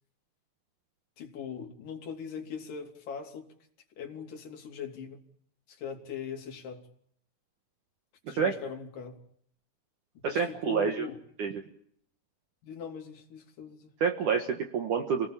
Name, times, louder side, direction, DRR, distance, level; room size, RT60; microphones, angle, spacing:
voice 1, 1.2-3.5 4.0-5.2 5.7-6.9 8.3-9.2 10.2-11.2 12.6-13.9, left 7 dB, 50° left, 4.4 m, -40 dB
voice 2, 8.3-8.6 10.2-11.1 11.4-11.6 14.0-15.3, right 6 dB, 60° right, 2.4 m, -28 dB
28.5 x 19.5 x 7.4 m
omnidirectional pair, 5.1 m